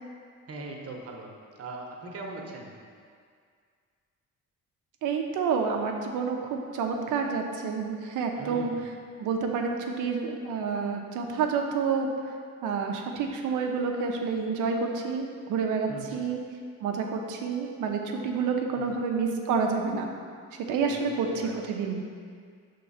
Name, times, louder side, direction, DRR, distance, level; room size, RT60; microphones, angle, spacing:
voice 1, 0.5-1.3 1.6-2.7 8.4-8.9 15.9-16.2 20.8-21.8, right 2 dB, 50° right, 0 dB, 1.1 m, -40 dB
voice 2, 5.0-8.7 9.2-12.1 12.6-16.4 16.8-20.1 20.6-22.0, right 5 dB, 90° right, 2 dB, 0.8 m, -29 dB
6.5 x 3.7 x 5.6 m, 2.1 s
cardioid pair, 90°, 30 cm